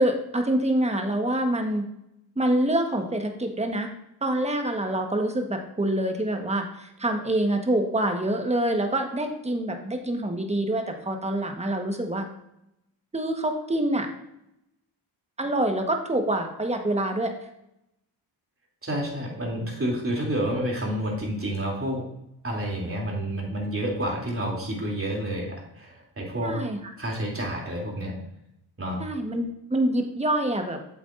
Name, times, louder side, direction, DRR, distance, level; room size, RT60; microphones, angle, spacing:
voice 1, 0.0-1.9 2.4-3.9 4.2-12.3 13.1-14.1 15.4-17.3 26.4-26.8 29.0-30.8, right 1 dB, 15° right, 4 dB, 1.3 m, -26 dB
voice 2, 18.8-22.0 22.4-26.5 27.0-28.1 28.8-29.0, right 1 dB, 30° right, -2 dB, 3.0 m, -29 dB
8.0 x 7.7 x 2.6 m, 0.84 s
cardioid pair, 65°, 44 cm